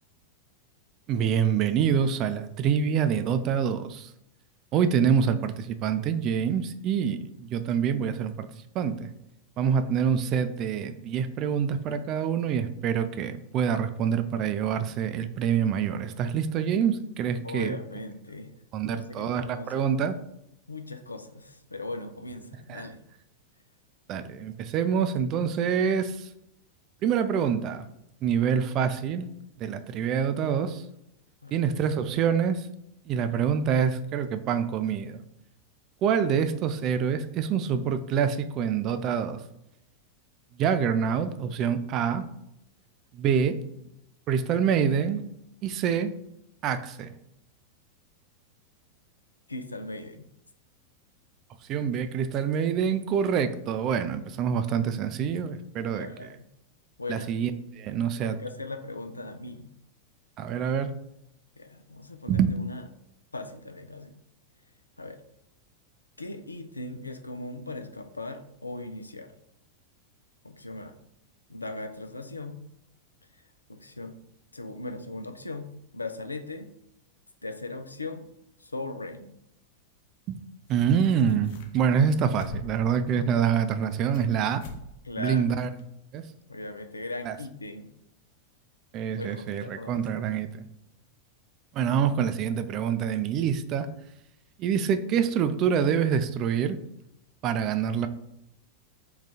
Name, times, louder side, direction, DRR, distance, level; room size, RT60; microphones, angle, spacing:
voice 1, 1.1-4.1 4.7-8.5 8.7-9.1 9.6-17.8 18.7-20.2 22.7-22.9 24.1-26.3 27.0-27.9 28.2-29.3 29.6-30.8 31.5-32.7 33.1-35.2 36.0-39.4 40.6-42.3 43.1-43.6 44.3-45.2 45.6-46.1 46.6-47.1 51.7-56.1 57.1-58.4 60.4-60.9 62.3-62.6 80.7-84.6 85.2-85.7 86.1-86.2 87.3-87.4 88.9-90.7 91.7-93.9 94.6-96.8 97.4-98.1, right 7 dB, 35° right, 10 dB, 0.3 m, -26 dB
voice 2, 17.4-18.5 18.9-19.9 20.7-23.0 31.4-31.9 43.3-43.4 43.8-43.9 49.5-50.3 55.9-56.5 57.0-57.3 58.1-59.7 61.6-62.8 63.3-64.1 65.0-65.2 66.2-69.3 70.4-70.9 71.5-72.6 73.3-74.2 74.5-76.7 77.4-78.3 78.6-79.3 85.0-85.5 86.5-87.9 89.2-90.1, left 2 dB, 80° left, 8 dB, 0.4 m, -39 dB
sound 1, 80.7-80.8 81.0-81.8 82.1-82.9 83.4-84.3 84.6-84.8 85.2-85.3 85.8-85.9, left 3 dB, 50° left, 0.7 m, -43 dB
3.8 x 2.3 x 4.2 m, 0.82 s
figure-of-eight pair, 90°, 0 cm